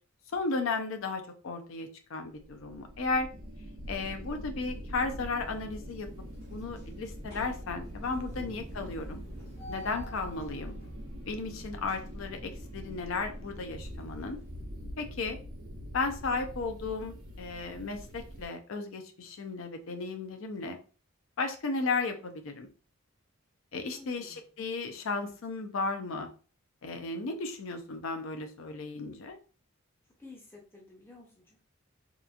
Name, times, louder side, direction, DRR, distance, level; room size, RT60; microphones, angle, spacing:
voice 1, 0.3-3.3 3.9-6.1 6.5-9.2 9.7-10.8 11.3-14.4 15.0-15.4 15.9-20.8 21.4-22.7 23.7-26.3 26.8-29.4, left 3 dB, 70° left, 7 dB, 0.5 m, -34 dB
sound 1, 2.4-18.5, equal, 85° right, 0.8 m, -43 dB
sound 2, 4.7-5.2 5.6-5.8 6.2-14.6, equal, 50° left, 0.8 m, -49 dB
voice 2, 23.9-24.4 30.2-31.6, left 3 dB, 10° left, -2 dB, 0.5 m, -53 dB
2.9 x 2.4 x 2.3 m, 0.37 s
head